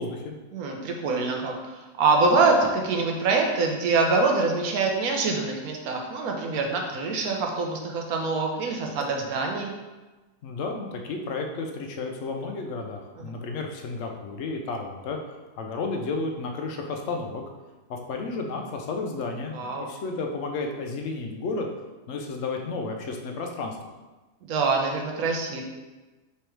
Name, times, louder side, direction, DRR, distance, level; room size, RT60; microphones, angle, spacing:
voice 1, 0.0-0.4 10.4-15.2 15.6-17.4 17.9-21.7 22.1-23.8, left 3 dB, 70° left, 2 dB, 0.6 m, -32 dB
voice 2, 0.5-9.7 13.2-13.3 19.5-19.9 24.5-25.6, right 3 dB, 65° right, 1 dB, 1.1 m, -25 dB
3.5 x 3.1 x 4.5 m, 1.2 s
omnidirectional pair, 1.8 m